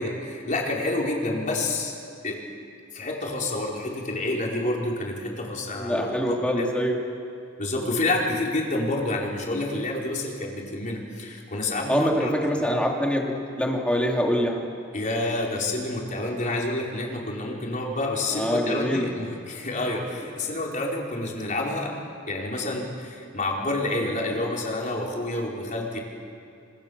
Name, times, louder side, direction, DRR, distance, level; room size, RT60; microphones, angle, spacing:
voice 1, 0.0-1.9 2.2-2.4 2.9-6.7 7.6-12.7 14.9-21.9 22.3-26.0, left 2 dB, 40° left, -2 dB, 4.8 m, -28 dB
voice 2, 5.8-7.0 11.9-13.2 13.6-14.6 18.3-19.1, equal, 5° left, -1 dB, 3.3 m, -24 dB
27.0 x 27.0 x 7.2 m, 2.6 s
head